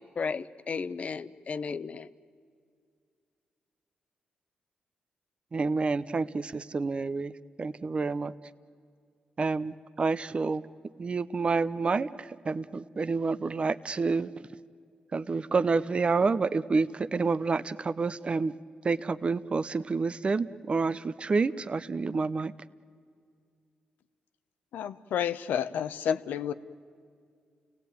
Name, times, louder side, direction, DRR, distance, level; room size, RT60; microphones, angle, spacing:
voice 1, 0.0-2.1, left 5 dB, 45° left, 15 dB, 0.8 m, -34 dB
voice 2, 5.5-7.3 7.6-8.3 9.4-10.6 11.0-14.3 15.1-18.5 18.8-22.5, right 4 dB, 40° right, 15 dB, 0.7 m, -28 dB
voice 3, 24.7-26.5, left 8 dB, 90° left, 11 dB, 0.8 m, -30 dB
30.0 x 17.5 x 9.4 m, 2.2 s
cardioid pair, 75°, 3 cm